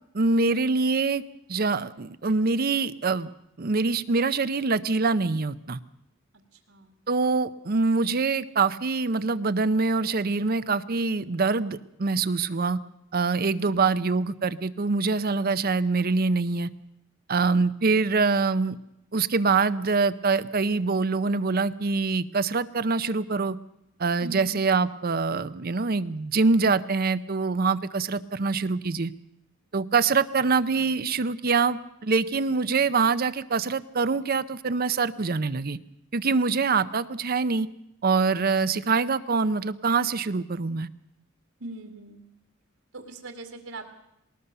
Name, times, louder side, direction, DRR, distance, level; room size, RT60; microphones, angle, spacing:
voice 1, 0.1-1.2 1.5-3.3 3.6-5.8 7.1-12.8 13.1-16.7 17.3-18.8 19.1-23.6 24.0-29.1 29.7-35.8 36.1-37.7 38.0-40.9, right 4 dB, 45° right, 13 dB, 0.7 m, -24 dB
voice 2, 7.7-8.0 13.6-14.0 24.2-24.5 41.6-42.2 42.9-43.9, right 2 dB, 75° right, 5 dB, 2.3 m, -41 dB
19.5 x 19.5 x 6.8 m, 0.81 s
head